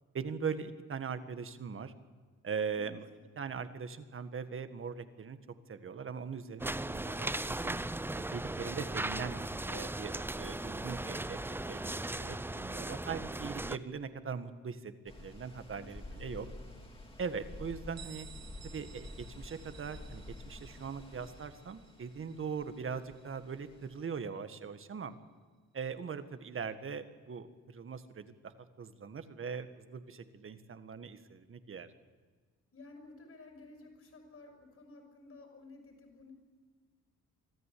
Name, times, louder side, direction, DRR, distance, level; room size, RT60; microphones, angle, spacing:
voice 1, 0.1-1.9 2.4-3.1 3.3-5.4 5.7-7.8 8.1-9.4 9.6-14.9 15.2-16.5 17.2-18.3 18.7-25.2 25.7-31.9, right 6 dB, 45° right, 10 dB, 1.8 m, -41 dB
voice 2, 2.7-3.2 15.7-16.6 32.7-36.3, left 2 dB, 50° left, 4 dB, 6.6 m, -54 dB
sound 1, 6.6-13.8, right 1 dB, 5° right, 0.7 m, -37 dB
sound 2, 15.1-24.1, left 2 dB, 20° left, 3.6 m, -50 dB
Bell, 18.0-23.5, right 9 dB, 60° right, 1.1 m, -56 dB
25.0 x 13.5 x 8.6 m, 1.5 s
cardioid pair, 90°, 30 cm